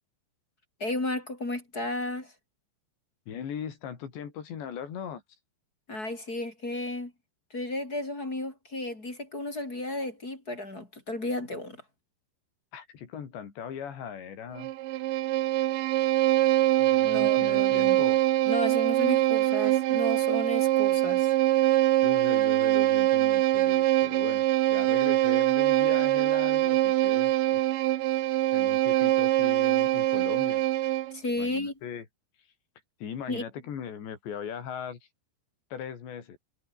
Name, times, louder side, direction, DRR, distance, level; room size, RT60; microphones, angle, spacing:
voice 1, 0.8-2.3 5.9-7.1 7.5-11.8 17.0-18.0 18.5-21.3 31.1-31.7 33.3-33.4, left 2 dB, 20° left, 4.4 m, -33 dB
voice 2, 3.3-5.2 12.7-14.7 16.8-18.2 22.0-27.8 28.5-30.6 31.4-32.0 33.0-35.0 35.7-36.4, left 8 dB, 75° left, 5.8 m, -39 dB
Bowed string instrument, 14.6-31.2, right 16 dB, 85° right, 3.4 m, -24 dB
omnidirectional pair, 5.1 m